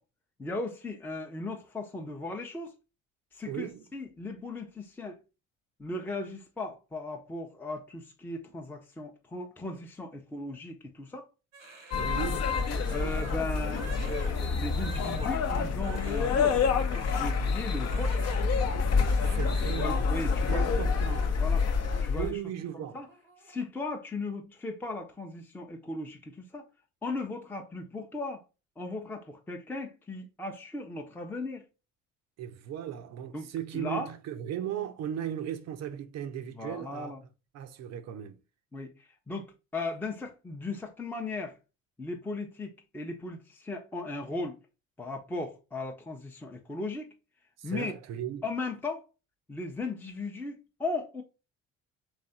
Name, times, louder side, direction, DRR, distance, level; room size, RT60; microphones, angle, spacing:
voice 1, 0.4-2.7 3.3-5.2 5.8-11.3 12.9-16.6 17.1-18.2 19.0-20.7 21.4-21.7 22.0-22.4 22.7-23.1 23.4-26.7 27.0-28.4 28.8-31.7 33.3-33.5 33.7-34.1 36.6-37.2 38.7-41.5 42.0-44.6 45.0-47.1 47.6-47.9 48.4-49.1 49.5-51.2, left 2 dB, 5° left, 0.7 m, -37 dB
voice 2, 3.5-3.8 12.0-12.6 19.3-20.1 20.5-21.4 22.2-23.0 32.4-37.1 37.5-38.4 47.6-48.4, right 10 dB, 45° right, 0.6 m, -37 dB
Crying sobbing, 11.5-18.5 18.8-19.6 19.9-20.4 20.9-22.2 22.5-22.7 23.1-23.6, right 3 dB, 90° right, 0.9 m, -49 dB
sound 1, 11.9-22.3, left 5 dB, 40° left, 0.8 m, -27 dB
3.4 x 3.2 x 3.9 m
figure-of-eight pair, 55°, 38 cm